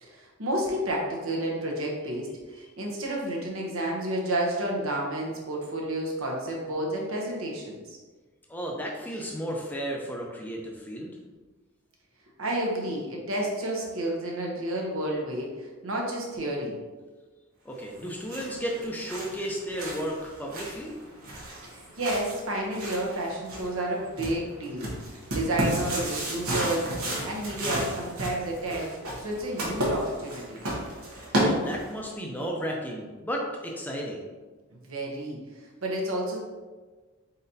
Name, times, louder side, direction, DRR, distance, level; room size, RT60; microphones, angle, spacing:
voice 1, 0.0-8.0 12.4-16.8 21.6-24.9 25.3-26.9 27.2-28.9 29.2-30.7 34.7-35.4 35.8-36.4, right 1 dB, 70° right, -1 dB, 0.9 m, -30 dB
voice 2, 8.5-11.1 17.6-20.9 31.4-34.2, equal, 10° left, -1 dB, 0.5 m, -33 dB
sound 1, 17.9-32.1, right 1 dB, 90° right, 1.2 m, -33 dB
4.2 x 3.9 x 2.7 m, 1.3 s
head